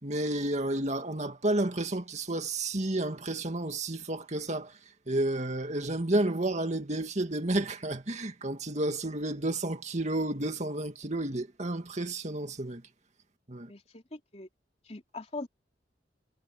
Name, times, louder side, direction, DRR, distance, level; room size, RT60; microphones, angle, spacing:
voice 1, 0.0-4.8 5.1-12.8 13.5-13.7, right 1 dB, 40° right, 2.2 m, -31 dB
voice 2, 13.7-14.5 14.8-15.5, left 2 dB, 35° left, 3.2 m, -41 dB
head